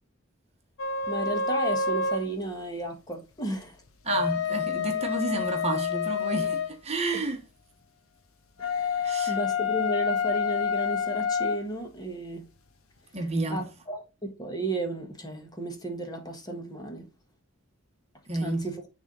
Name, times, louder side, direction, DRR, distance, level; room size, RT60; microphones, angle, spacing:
sound 1, 0.8-2.3 3.9-6.7 8.6-11.6, left 5 dB, 90° left, 1.0 m, -28 dB
voice 1, 1.1-3.8 7.1-7.2 8.6-12.4 13.5-17.1 18.4-18.8, right 1 dB, 20° left, 1.5 m, -33 dB
voice 2, 4.0-7.4 9.0-9.4 13.1-13.6 18.3-18.6, right 2 dB, 30° right, 1.1 m, -30 dB
9.3 x 3.6 x 3.9 m
head